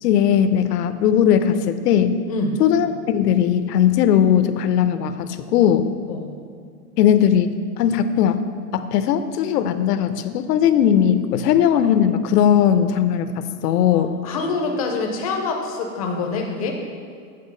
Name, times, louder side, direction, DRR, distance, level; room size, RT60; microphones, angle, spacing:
voice 1, 0.0-2.2 2.6-5.9 7.0-7.5 7.8-8.4 8.7-14.1, left 9 dB, 80° left, 11 dB, 0.7 m, -18 dB
voice 2, 13.9-16.9, left 3 dB, 25° left, 3 dB, 0.4 m, -26 dB
8.4 x 4.4 x 5.3 m, 2.3 s
supercardioid pair, 175°, 47 cm